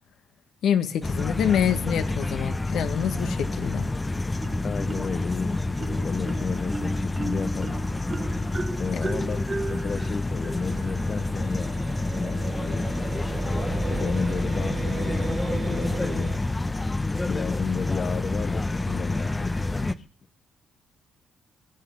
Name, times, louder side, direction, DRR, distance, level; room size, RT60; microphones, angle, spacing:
voice 1, 0.6-3.9, left 9 dB, 70° left, 9 dB, 1.6 m, -26 dB
sound 1, 1.0-19.9, left 2 dB, 15° left, 0.9 m, -28 dB
Marimba xylophone, 4.4-5.3 5.8-11.3, right 3 dB, 25° right, 1.3 m, -36 dB
voice 2, 4.6-7.9 8.8-11.8 12.2-13.0 13.9-16.4 17.2-20.1, left 5 dB, 45° left, 10 dB, 1.0 m, -33 dB
sound 2, 10.5-16.4, right 4 dB, 40° right, 3.1 m, -36 dB
20.5 x 8.5 x 5.4 m, 0.38 s
cardioid pair, 90°, 0 cm